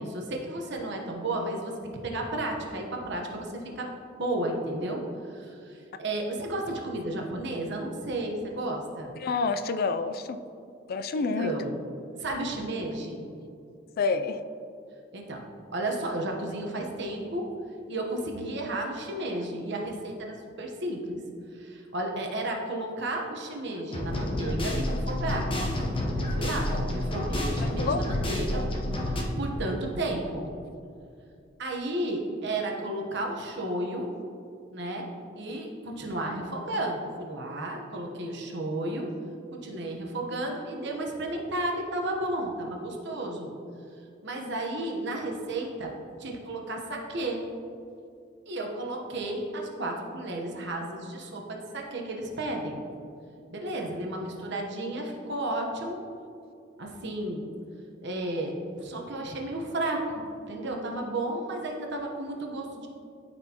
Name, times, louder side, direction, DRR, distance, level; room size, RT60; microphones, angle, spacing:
voice 1, 0.0-3.9 4.2-9.2 11.1-11.7 12.2-13.3 15.1-15.4 15.7-17.5 17.9-21.2 21.5-25.5 26.1-28.7 29.0-30.5 31.6-34.1 34.7-35.1 35.4-39.1 39.5-43.5 44.2-45.9 46.2-47.5 48.5-52.8 53.5-56.0 56.8-57.4 58.0-62.9, right 1 dB, 65° right, 1 dB, 1.0 m, -33 dB
voice 2, 9.2-10.4 10.9-11.5 14.0-14.4 27.6-28.0, left 4 dB, 50° left, 10 dB, 0.3 m, -28 dB
sound 1, 23.9-29.2, left 1 dB, 30° left, 0.9 m, -29 dB
13.0 x 4.4 x 2.9 m, 2.5 s
head